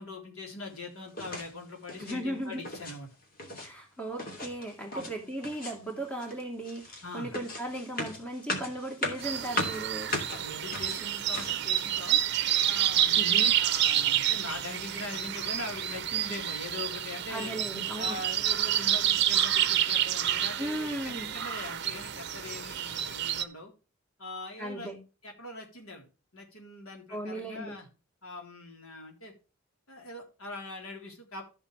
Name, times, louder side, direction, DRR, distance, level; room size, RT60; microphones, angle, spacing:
voice 1, 0.0-3.1 4.9-5.1 7.0-7.3 10.4-12.2 12.6-17.6 18.0-23.7 24.2-24.9 25.2-26.0 26.3-27.9 28.2-29.3 29.9-31.4, left 2 dB, 80° left, 1 dB, 4.0 m, -42 dB
sound 1, 1.1-1.5 1.8-2.2 2.5-3.0 3.2-3.7 4.2-5.2 5.4-5.9 6.2-11.7, left 2 dB, 45° left, 2.9 m, -37 dB
voice 2, 2.0-2.6 3.6-10.1 13.1-13.5 17.3-18.2 20.6-21.3 24.6-25.0 27.1-27.8, right 1 dB, 5° left, 1 dB, 2.6 m, -37 dB
sound 2, 9.2-23.4, right 11 dB, 55° right, 0.8 m, -29 dB
13.5 x 7.2 x 3.3 m, 0.32 s
head